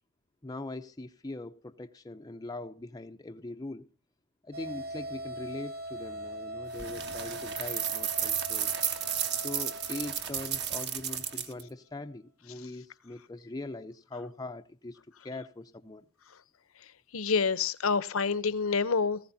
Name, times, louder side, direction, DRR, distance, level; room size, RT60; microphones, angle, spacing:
voice 1, 0.4-3.9 4.4-8.7 9.3-15.0 15.2-16.0, left 2 dB, 20° left, 0.5 m, -41 dB
sound 1, 4.5-11.4, right 1 dB, 75° right, 4.8 m, -41 dB
sound 2, 6.7-11.6, right 9 dB, 55° right, 1.7 m, -33 dB
voice 2, 17.1-19.2, left 5 dB, 70° left, 0.8 m, -27 dB
18.5 x 15.5 x 2.7 m
head